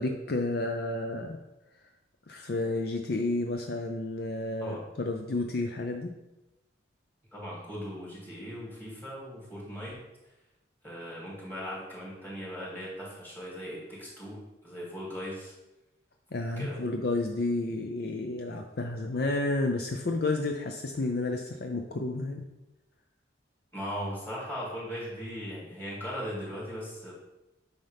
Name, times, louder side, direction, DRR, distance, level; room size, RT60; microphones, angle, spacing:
voice 1, 0.0-1.4 2.3-6.1 16.3-22.4, left 2 dB, 55° left, 3 dB, 0.5 m, -31 dB
voice 2, 7.3-10.0 10.8-15.5 16.6-16.8 23.7-27.1, equal, 10° left, -7 dB, 2.9 m, -38 dB
9.3 x 5.5 x 3.5 m, 0.99 s
head